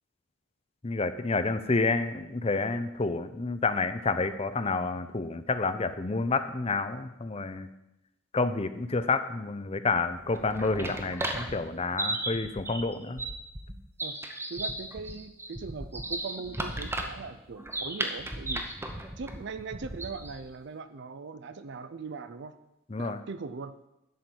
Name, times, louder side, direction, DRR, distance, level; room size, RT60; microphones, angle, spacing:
voice 1, 0.8-7.7 8.3-13.2 22.9-23.2, left 3 dB, 25° left, 11 dB, 0.5 m, -29 dB
sound 1, 10.2-20.4, right 2 dB, 10° right, 0.8 m, -35 dB
voice 2, 14.5-18.8 19.2-22.5 23.0-23.7, right 4 dB, 50° right, 11 dB, 0.4 m, -40 dB
11.0 x 4.4 x 7.8 m, 0.89 s
head